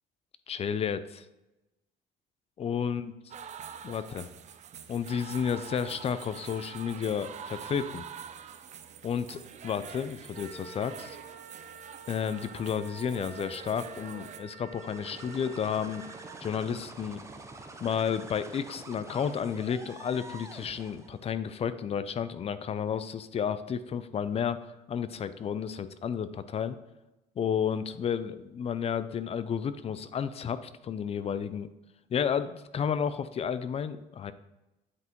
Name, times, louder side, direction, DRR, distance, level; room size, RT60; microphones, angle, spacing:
voice 1, 0.5-1.3 2.6-3.1 3.8-4.3 4.9-8.1 9.0-11.2 12.1-16.1 16.4-17.3 17.8-26.8 27.4-31.7 32.1-34.3, left 7 dB, 35° left, 13 dB, 0.4 m, -32 dB
sound 1, 3.3-14.4, right 8 dB, 45° right, 0.5 m, -45 dB
Wind instrument woodwind instrument, 10.3-16.4, right 5 dB, 85° right, 1.2 m, -48 dB
sound 2, 14.6-21.2, right 2 dB, 15° right, 0.8 m, -46 dB
8.2 x 5.5 x 3.1 m, 1.0 s
cardioid pair, 110°, 17 cm